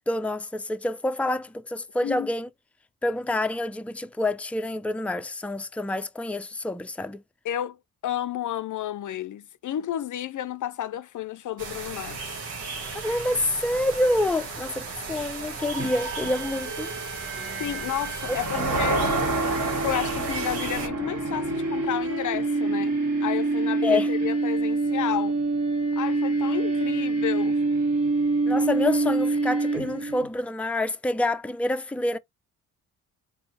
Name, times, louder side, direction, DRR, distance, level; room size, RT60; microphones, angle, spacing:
voice 1, 0.1-2.5 3.0-7.2 12.9-16.9 18.5-18.7 23.8-24.1 28.5-32.2, left 2 dB, 5° left, 0.5 m, -27 dB
voice 2, 2.0-2.3 7.4-7.8 8.0-12.3 17.6-19.2 19.8-25.4 26.0-27.6, left 11 dB, 50° left, 0.5 m, -31 dB
sound 1, 11.6-20.9, right 4 dB, 85° right, 2.0 m, -36 dB
sound 2, 15.8-30.3, right 3 dB, 40° right, 1.8 m, -27 dB
sound 3, 18.2-22.3, right 3 dB, 60° right, 2.5 m, -30 dB
4.4 x 3.6 x 2.8 m
supercardioid pair, 55°, 38 cm